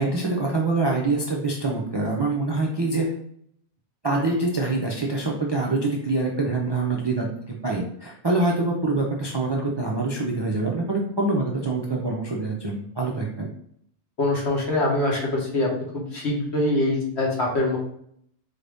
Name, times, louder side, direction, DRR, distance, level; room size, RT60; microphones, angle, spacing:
voice 1, 0.0-3.1 4.0-13.5, right 3 dB, 40° right, -1 dB, 0.3 m, -25 dB
voice 2, 14.2-15.7 16.1-17.8, left 2 dB, 75° left, -2 dB, 1.4 m, -23 dB
4.1 x 2.6 x 3.4 m, 0.68 s
omnidirectional pair, 1.1 m